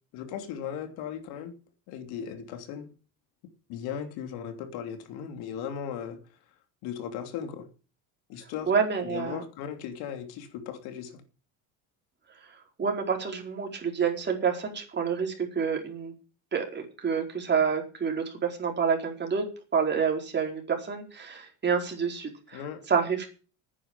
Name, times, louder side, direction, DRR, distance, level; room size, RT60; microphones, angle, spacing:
voice 1, 0.1-1.6 1.9-2.9 3.7-6.2 6.8-7.7 8.3-8.7 9.1-11.2 22.5-22.8, left 8 dB, 75° left, 3.0 m, -37 dB
voice 2, 8.7-9.4 12.8-16.1 16.5-19.4 19.7-22.6 22.9-23.3, right 6 dB, 25° right, 4.5 m, -28 dB
10.0 x 9.9 x 8.9 m
cardioid pair, 115°, 38 cm